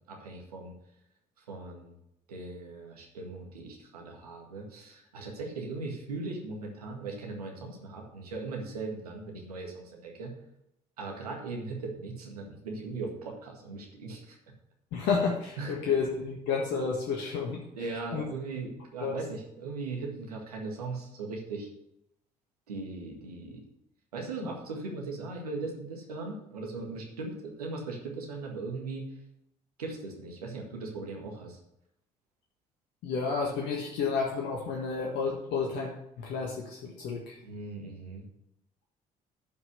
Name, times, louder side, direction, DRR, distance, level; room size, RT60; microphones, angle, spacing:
voice 1, 0.1-0.7 1.4-1.9 2.3-10.3 11.0-14.4 15.6-15.7 17.8-21.7 22.7-23.6 24.1-29.2 29.8-31.6 37.4-38.3, right 3 dB, 85° right, 0 dB, 1.9 m, -39 dB
voice 2, 14.9-17.6 18.1-18.2 19.0-19.2 24.4-24.5 33.0-37.4, left 5 dB, 65° left, -1 dB, 1.6 m, -31 dB
10.5 x 5.6 x 6.7 m, 0.81 s
figure-of-eight pair, 50°, 19 cm